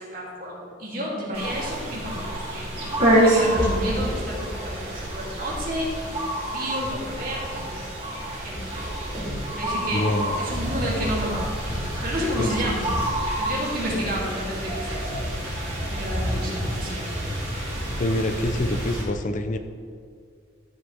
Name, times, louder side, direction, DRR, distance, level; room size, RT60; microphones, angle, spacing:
voice 1, 0.0-2.7 3.2-6.2 6.5-8.0 8.4-8.6 9.6-10.0 10.4-11.5 12.0-12.9 13.4-15.1 15.8-17.1, equal, 45° right, -4 dB, 2.8 m, -31 dB
sound 1, 1.3-19.0, right 1 dB, 30° right, 3.0 m, -27 dB
voice 2, 9.9-10.4 12.4-12.5 18.0-19.6, left 1 dB, 40° left, 8 dB, 0.5 m, -25 dB
14.0 x 8.0 x 3.5 m, 2.2 s
head